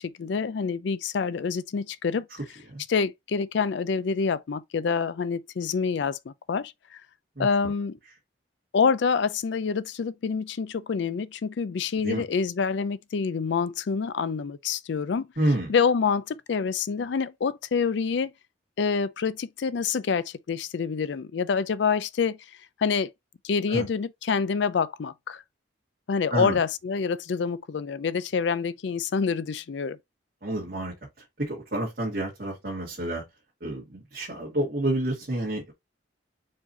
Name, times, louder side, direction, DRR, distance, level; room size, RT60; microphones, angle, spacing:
voice 1, 0.0-2.3 2.9-7.0 7.4-8.0 8.7-15.3 15.7-18.3 18.8-22.4 22.8-23.1 23.4-25.4 26.1-30.0, left 5 dB, 70° left, 0.4 m, -27 dB
voice 2, 15.4-15.7 23.7-23.9 26.3-26.6 30.4-30.9 31.4-33.2 33.6-35.7, right 1 dB, 50° right, 1.7 m, -29 dB
4.6 x 2.7 x 4.1 m
head